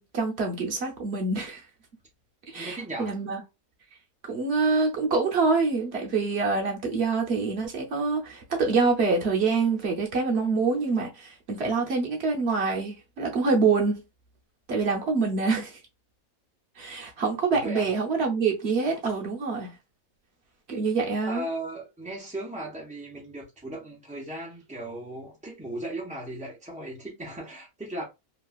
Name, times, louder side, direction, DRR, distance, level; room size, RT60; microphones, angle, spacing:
voice 1, 0.0-1.6 2.5-3.4 4.2-14.0 14.7-15.8 16.8-19.7 20.7-21.5, right 4 dB, 55° right, 0.9 m, -26 dB
voice 2, 2.5-3.2 17.5-17.8 21.2-28.0, right 1 dB, 10° right, 0.3 m, -37 dB
3.0 x 2.3 x 2.3 m
omnidirectional pair, 1.5 m